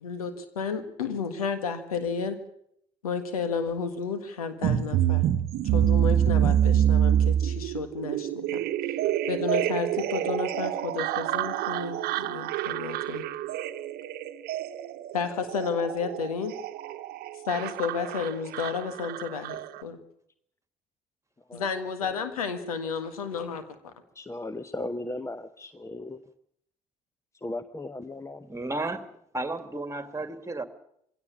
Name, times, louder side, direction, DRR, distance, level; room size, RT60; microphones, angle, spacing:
voice 1, 0.0-2.4 3.0-5.3 5.6-8.6 8.9-9.0 9.3-13.3 15.1-16.5 17.5-20.0 21.5-23.6, left 5 dB, 85° left, 10 dB, 1.7 m, -32 dB
sound 1, 4.6-19.8, right 10 dB, 60° right, 1.1 m, -27 dB
voice 2, 24.1-26.2 27.3-28.5, left 2 dB, 15° left, 13 dB, 1.0 m, -37 dB
voice 3, 28.5-30.6, right 2 dB, 15° right, 10 dB, 2.3 m, -33 dB
22.0 x 17.0 x 8.5 m, 0.72 s
hypercardioid pair, 50°, 18 cm